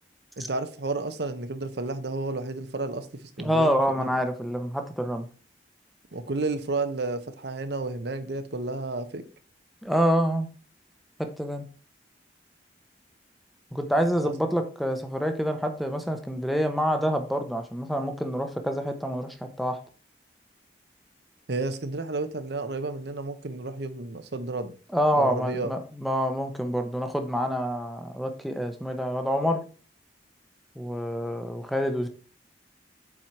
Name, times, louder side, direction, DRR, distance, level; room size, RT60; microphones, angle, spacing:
voice 1, 0.4-4.1 6.1-9.2 14.2-14.3 21.5-24.7 25.1-25.7, right 3 dB, 70° right, 0.8 m, -31 dB
voice 2, 3.4-5.3 9.8-10.5 11.4-11.6 13.7-19.8 24.9-29.6 30.8-32.1, equal, ahead, 0.7 m, -27 dB
7.4 x 4.5 x 4.6 m
head